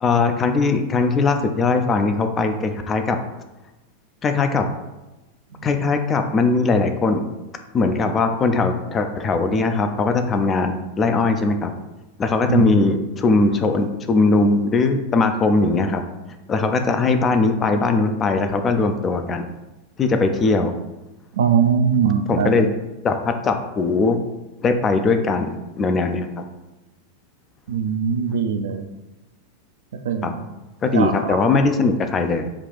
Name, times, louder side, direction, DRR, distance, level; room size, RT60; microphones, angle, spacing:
voice 1, 0.0-3.2 4.2-4.7 5.6-7.2 7.7-11.7 12.2-16.0 16.5-19.5 20.0-20.7 22.3-22.7 23.0-24.2 24.6-26.3 30.2-30.3 30.8-32.5, left 3 dB, 25° left, 7 dB, 0.3 m, -20 dB
voice 2, 21.4-22.5 27.7-28.8 30.1-30.4 30.9-31.6, right 7 dB, 60° right, 7 dB, 0.3 m, -21 dB
3.4 x 2.3 x 4.0 m, 1.0 s
figure-of-eight pair, 90°, 0 cm